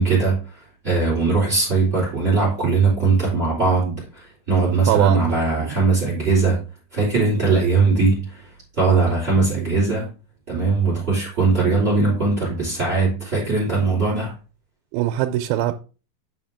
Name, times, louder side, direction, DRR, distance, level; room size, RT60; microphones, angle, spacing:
voice 1, 0.0-6.6 6.9-8.5 8.8-10.1 10.5-14.3, right 4 dB, 20° right, 3.9 m, -20 dB
voice 2, 4.9-5.2 5.6-5.7 9.4-9.7 14.9-15.7, right 13 dB, 90° right, 2.4 m, -22 dB
8.4 x 5.7 x 3.5 m
omnidirectional pair, 4.3 m